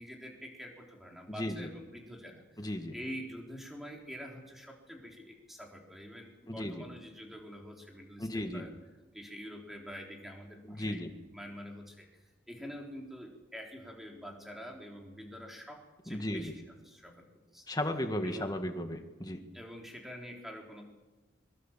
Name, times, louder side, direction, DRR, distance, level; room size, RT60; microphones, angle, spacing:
voice 1, 0.0-8.7 9.1-11.1 11.3-12.1 12.5-17.6 18.2-18.6 19.5-20.8, equal, ahead, 0 dB, 3.9 m, -46 dB
voice 2, 1.3-1.7 2.6-2.9 6.5-6.8 8.2-8.7 10.7-11.1 16.1-16.5 17.7-19.4, left 1 dB, 20° left, 6 dB, 1.9 m, -35 dB
23.5 x 23.5 x 7.5 m, 1.1 s
head